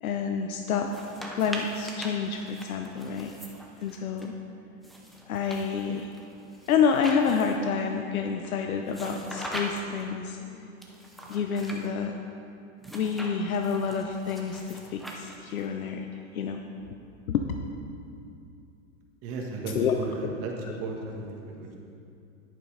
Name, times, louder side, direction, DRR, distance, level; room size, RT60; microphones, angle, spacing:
voice 1, 0.0-0.9 1.3-3.3 3.8-4.4 5.3-6.1 6.7-10.8 11.3-12.2 12.9-16.1 16.3-16.6 17.3-17.5 19.7-20.0 20.6-20.7, left 6 dB, 85° left, 4 dB, 0.8 m, -28 dB
sound 1, 0.8-4.3 4.8-7.7 8.9-10.0 10.8-11.9 12.8-15.6, equal, ahead, 0.4 m, -41 dB
voice 2, 19.2-20.5 20.8-21.8, right 3 dB, 35° right, -1 dB, 1.8 m, -35 dB
10.5 x 8.4 x 5.0 m, 2.6 s
hypercardioid pair, 135°, 41 cm